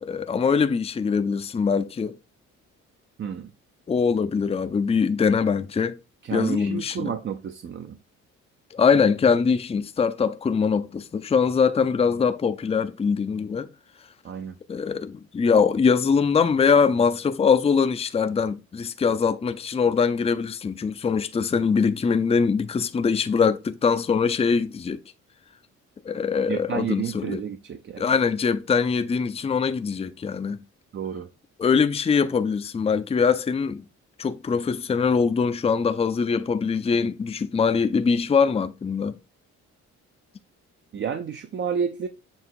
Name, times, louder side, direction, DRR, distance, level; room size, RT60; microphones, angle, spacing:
voice 1, 0.0-2.2 3.9-6.0 6.3-7.1 8.7-13.7 14.7-25.0 26.1-27.4 28.0-30.6 31.6-33.8 34.2-39.2, left 5 dB, 20° left, 0.5 m, -22 dB
voice 2, 3.2-3.5 6.2-7.9 14.2-14.5 26.5-28.0 30.9-31.3 40.9-42.1, right 7 dB, 40° right, 0.6 m, -30 dB
7.2 x 2.9 x 4.5 m
cardioid pair, 90°, 30 cm